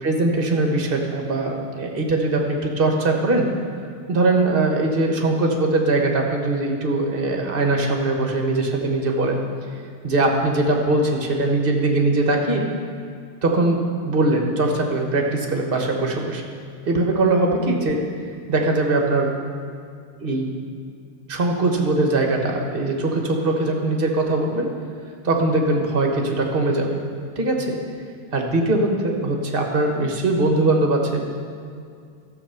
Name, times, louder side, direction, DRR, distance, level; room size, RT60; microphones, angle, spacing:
voice 1, 0.0-3.5 4.1-9.4 10.0-12.7 13.4-16.4 16.8-18.0 18.5-19.3 20.2-20.5 21.3-24.7 25.2-27.0 27.4-27.8 28.3-31.3, right 2 dB, 35° right, 1 dB, 0.9 m, -21 dB
13.5 x 7.6 x 5.6 m, 2.3 s
omnidirectional pair, 2.4 m